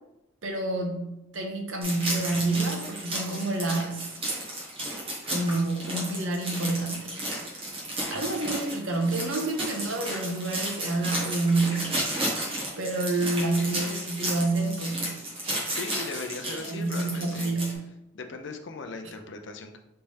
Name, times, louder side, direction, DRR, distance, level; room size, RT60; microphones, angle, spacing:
voice 1, 0.4-4.1 5.3-7.1 8.1-12.0 12.8-15.2 16.4-17.9, right 2 dB, 70° right, 2 dB, 0.8 m, -28 dB
sound 1, 1.8-17.7, right 1 dB, 30° right, 1.1 m, -33 dB
voice 2, 15.7-17.5 18.1-19.8, left 3 dB, 60° left, 5 dB, 0.5 m, -38 dB
4.1 x 3.3 x 3.3 m, 0.89 s
head